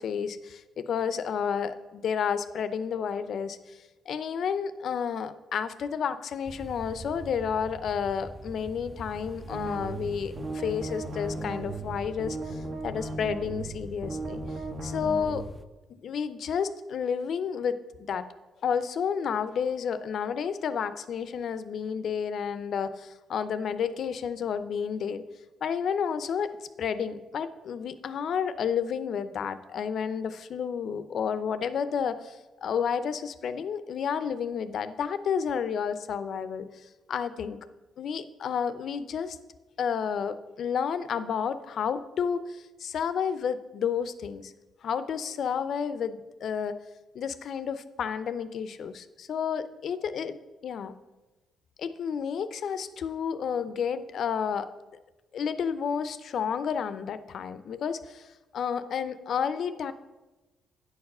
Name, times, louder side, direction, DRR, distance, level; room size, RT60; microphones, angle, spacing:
voice 1, 0.0-3.8 4.1-14.4 14.8-15.4 15.9-18.3 18.6-25.2 25.6-26.5 26.8-36.7 37.1-37.6 38.0-39.4 39.8-44.5 44.8-46.8 47.1-50.9 51.8-54.7 55.3-58.3 58.5-59.9, left 7 dB, 60° left, 13 dB, 0.6 m, -31 dB
sound 1, 6.5-15.7, right 2 dB, 5° right, 0.5 m, -44 dB
sound 2, 9.5-15.4, right 2 dB, 50° right, 1.2 m, -37 dB
8.8 x 4.8 x 6.5 m, 1.1 s
cardioid pair, 90°, 0 cm